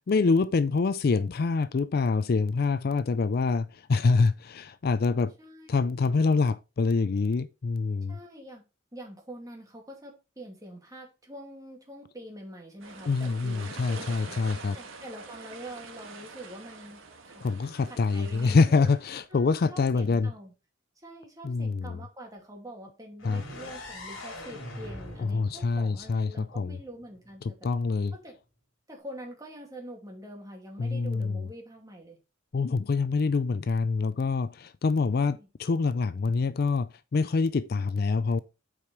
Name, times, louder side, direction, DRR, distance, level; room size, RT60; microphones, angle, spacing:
voice 1, 0.1-5.3 5.7-8.2 13.1-14.8 17.4-20.3 21.4-22.0 23.2-23.4 25.2-26.8 27.6-28.1 30.8-31.4 32.5-38.4, left 4 dB, 50° left, 0.4 m, -26 dB
voice 2, 5.1-5.9 8.1-8.6 8.9-14.2 14.7-17.4 17.9-18.9 19.3-20.5 21.0-27.6 28.1-28.4 28.9-32.2 35.2-35.5, equal, 15° right, 2.4 m, -45 dB
sound 1, 12.8-19.3, right 4 dB, 80° right, 1.5 m, -45 dB
sound 2, 23.2-27.1, left 1 dB, 70° left, 2.7 m, -43 dB
8.6 x 4.9 x 4.3 m
head